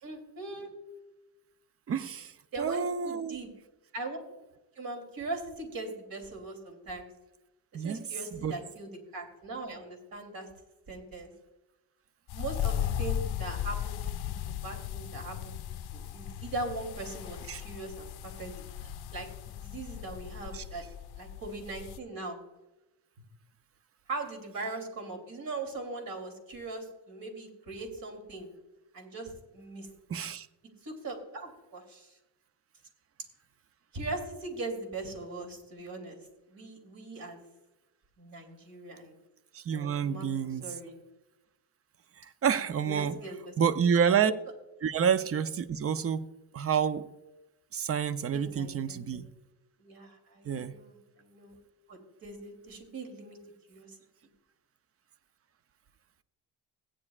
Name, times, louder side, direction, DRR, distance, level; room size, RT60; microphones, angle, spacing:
voice 1, 0.0-0.7 2.5-3.5 3.9-4.2 4.7-7.1 7.7-10.5 10.9-11.3 12.3-14.0 14.2-15.5 15.9-19.3 19.6-20.8 21.2-22.4 24.1-28.5 28.9-29.9 30.8-32.2 33.9-36.2 36.5-37.4 38.2-39.1 39.7-40.9 42.9-43.5 48.3-49.2 49.8-51.5 51.9-53.4 53.7-54.0, right 2 dB, 55° right, 3.1 m, -40 dB
voice 2, 1.9-3.4 7.7-8.0 8.3-8.5 17.5-17.6 20.5-20.6 30.1-30.5 39.5-40.7 42.2-43.2 43.6-44.3 44.8-46.3 46.5-47.1 47.7-49.3 50.5-50.7, right 7 dB, 35° right, 0.6 m, -29 dB
sound 1, 12.3-22.0, left 10 dB, 70° left, 0.6 m, -37 dB
16.5 x 9.8 x 2.4 m
cardioid pair, 105°, 41 cm